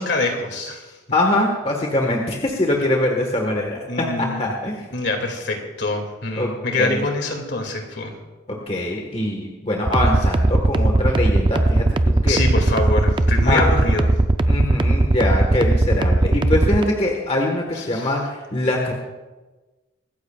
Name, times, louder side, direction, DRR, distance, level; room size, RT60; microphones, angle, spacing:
voice 1, 0.0-0.9 3.9-4.4 4.9-8.1 12.3-14.1 17.9-18.0, left 2 dB, 60° left, 3 dB, 2.3 m, -24 dB
voice 2, 1.1-3.8 4.2-4.9 6.4-7.1 8.7-12.4 13.4-13.8 14.5-18.9, left 1 dB, 30° left, 1 dB, 1.4 m, -23 dB
sound 1, 9.9-16.8, right 2 dB, 25° right, 0.4 m, -17 dB
24.0 x 14.5 x 2.4 m, 1.2 s
head